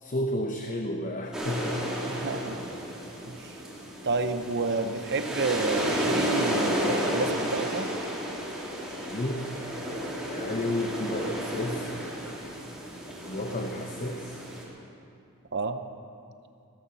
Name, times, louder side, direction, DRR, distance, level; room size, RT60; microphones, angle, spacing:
voice 1, 0.0-2.2 8.9-9.5 10.3-11.9 13.2-14.4, left 1 dB, 35° left, 3 dB, 0.8 m, -32 dB
sound 1, 1.3-14.6, equal, 5° right, 2.6 m, -32 dB
voice 2, 2.1-2.6 3.3-3.5 4.0-7.9 15.5-15.8, right 3 dB, 50° right, 9 dB, 0.8 m, -30 dB
16.0 x 11.0 x 7.0 m, 2.6 s
head